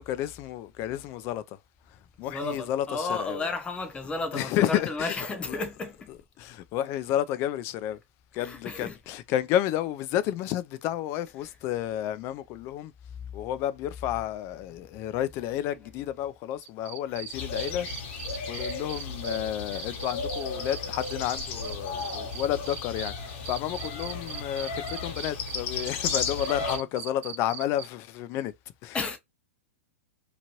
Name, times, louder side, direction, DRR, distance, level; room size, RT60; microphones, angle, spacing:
voice 1, 0.0-1.6 1.9-3.4 4.3-5.6 6.4-8.0 8.3-12.9 13.3-18.2 18.5-28.5 28.8-29.0, left 12 dB, 35° left, 0.4 m, -31 dB
voice 2, 2.2-6.1 8.3-9.0 11.4-11.6 13.1-13.3 28.9-29.2, left 3 dB, 15° left, 0.8 m, -33 dB
sound 1, 16.6-19.4 19.7-23.1 23.4-27.9, right 10 dB, 60° right, 0.6 m, -39 dB
sound 2, 17.3-26.8, left 4 dB, 55° left, 1.1 m, -34 dB
2.9 x 2.5 x 3.0 m
hypercardioid pair, 130°, 7 cm